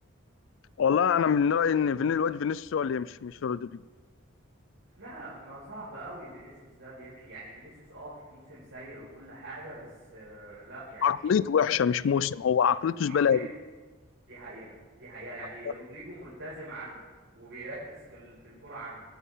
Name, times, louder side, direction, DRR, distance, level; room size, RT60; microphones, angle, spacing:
voice 1, 0.8-3.8 11.0-13.5, left 7 dB, 75° left, 0.3 m, -25 dB
voice 2, 4.9-11.3 12.1-12.2 13.0-13.4 14.3-17.0 17.3-19.0, right 1 dB, 90° right, 4.9 m, -44 dB
24.5 x 8.3 x 3.7 m
head